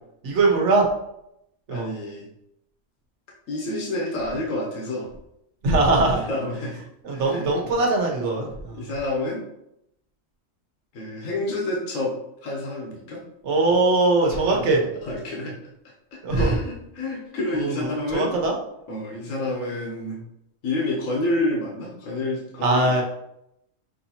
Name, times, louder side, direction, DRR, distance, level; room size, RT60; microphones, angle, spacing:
voice 1, 0.2-0.9 1.7-1.9 5.6-6.2 7.0-8.8 13.4-14.8 16.2-16.5 17.5-18.5 22.6-23.0, right 2 dB, 65° right, 0 dB, 1.2 m, -21 dB
voice 2, 1.7-2.3 3.5-5.1 6.1-6.8 7.1-7.7 8.3-9.4 10.9-12.1 12.4-13.2 14.3-14.7 15.0-15.5 16.3-18.4 18.9-20.2 20.6-23.0, left 2 dB, 85° left, -3 dB, 1.3 m, -29 dB
6.2 x 2.8 x 2.8 m, 0.81 s
omnidirectional pair, 1.3 m